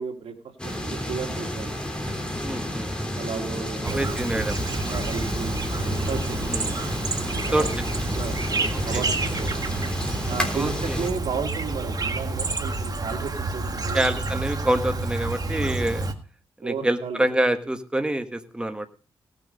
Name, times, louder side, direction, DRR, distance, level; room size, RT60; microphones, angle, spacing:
voice 1, 0.0-2.3 3.1-4.1 4.9-6.5 7.2-7.7 8.1-9.7 10.3-14.1 15.5-15.8 16.6-17.2, right 6 dB, 85° right, 4 dB, 2.2 m, -34 dB
sound 1, 0.6-11.1, left 1 dB, 10° left, 3.4 m, -31 dB
voice 2, 2.4-2.9 3.8-4.6 6.5-6.7 7.5-7.7 8.9-9.0 10.5-11.0 13.9-16.1 16.6-18.9, right 1 dB, 10° right, 7 dB, 1.4 m, -26 dB
Chirp tweet, 3.8-16.1, right 3 dB, 40° right, 1.7 m, -29 dB
18.0 x 6.7 x 5.2 m, 0.39 s
cardioid pair, 85°, 10 cm